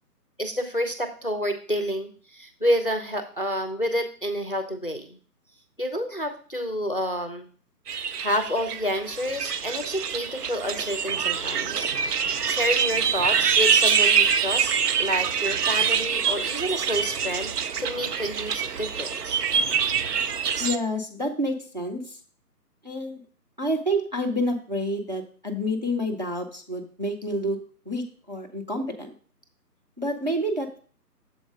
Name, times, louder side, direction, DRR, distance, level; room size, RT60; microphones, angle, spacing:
voice 1, 0.4-5.2 5.8-7.5 8.2-11.9 12.2-19.4, equal, 35° left, 7 dB, 0.5 m, -29 dB
sound 1, 7.9-20.8, right 6 dB, 70° right, 0.6 m, -25 dB
voice 2, 20.6-22.2 22.8-23.2 23.6-29.1 30.0-30.8, equal, 30° right, 1 dB, 0.6 m, -28 dB
7.1 x 4.3 x 4.9 m, 0.44 s
figure-of-eight pair, 155°, 49 cm